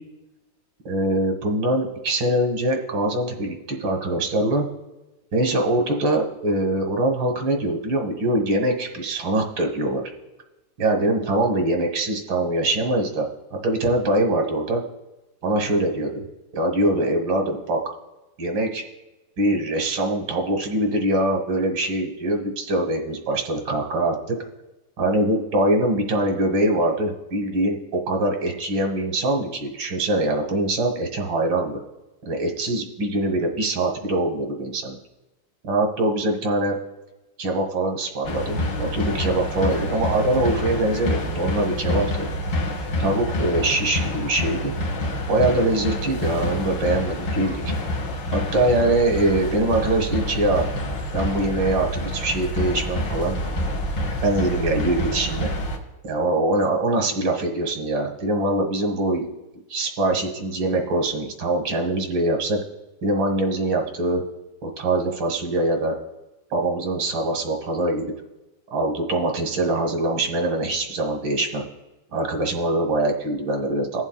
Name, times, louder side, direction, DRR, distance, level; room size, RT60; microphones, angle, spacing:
voice 1, 0.9-4.7 5.3-10.0 10.8-13.3 13.5-14.8 15.4-16.3 16.5-17.8 18.4-18.8 19.4-24.4 25.0-31.8 32.3-35.0 35.6-36.8 37.4-42.3 43.0-44.7 45.3-47.7 48.3-50.7 51.1-53.4 54.2-55.5 56.0-59.3 59.7-62.6 63.0-64.2 64.6-66.0 66.5-68.1 68.7-71.7 72.1-74.0, right 1 dB, 85° right, 2 dB, 2.0 m, -23 dB
sound 1, 38.2-55.8, left 1 dB, 75° left, 1.9 m, -27 dB
20.5 x 7.2 x 2.3 m, 1.0 s
omnidirectional pair, 2.1 m